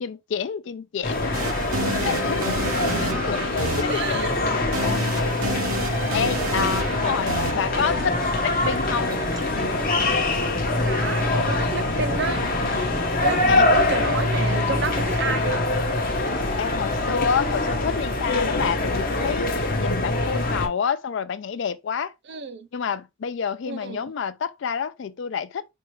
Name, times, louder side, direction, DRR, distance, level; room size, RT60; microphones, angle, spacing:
voice 1, 0.0-1.4 2.0-2.5 3.0-4.3 4.5-5.1 6.1-8.2 8.4-9.1 13.1-13.7 16.6-22.1 22.7-25.7, left 6 dB, 60° left, 0.3 m, -28 dB
sound 1, 1.0-20.7, left 2 dB, 40° left, 0.7 m, -24 dB
sound 2, 1.3-9.3, right 3 dB, 85° right, 0.9 m, -31 dB
voice 2, 2.7-3.1 3.9-4.3 10.8-12.4 13.2-15.7 22.3-22.7 23.7-24.0, right 4 dB, 55° right, 0.5 m, -30 dB
sound 3, 7.7-15.2, right 1 dB, 20° right, 0.7 m, -35 dB
4.5 x 2.3 x 3.0 m
head